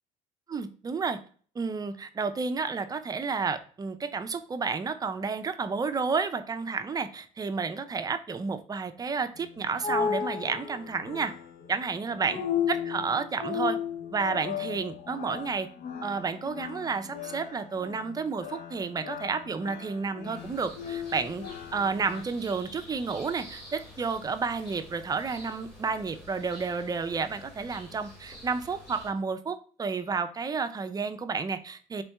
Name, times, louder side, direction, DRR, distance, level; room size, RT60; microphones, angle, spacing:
voice 1, 0.5-1.2 1.6-11.3 11.7-12.4 12.7-13.8 14.1-15.7 16.0-21.4 21.7-32.0, right 5 dB, 25° right, 9 dB, 0.5 m, -31 dB
sound 1, 9.4-22.2, left 7 dB, 70° left, 0.9 m, -35 dB
sound 2, 20.3-29.1, left 1 dB, ahead, 2.4 m, -49 dB
4.1 x 3.7 x 3.4 m, 0.43 s
cardioid pair, 120°, 16 cm